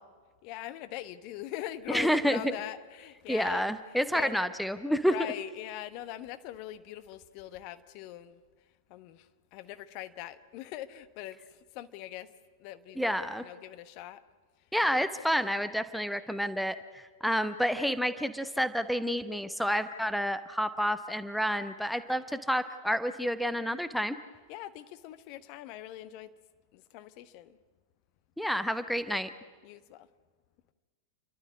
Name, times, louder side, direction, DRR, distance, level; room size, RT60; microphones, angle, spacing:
voice 1, 0.4-4.4 5.1-8.4 8.9-12.3 12.6-14.2 24.5-26.3 26.7-27.6 29.6-30.1, left 13 dB, 45° left, 1.1 m, -42 dB
voice 2, 1.9-2.4 3.3-5.1 13.0-13.4 14.7-24.2 28.4-29.3, equal, ahead, 0.9 m, -29 dB
29.5 x 12.5 x 9.7 m
figure-of-eight pair, 90°, 0 cm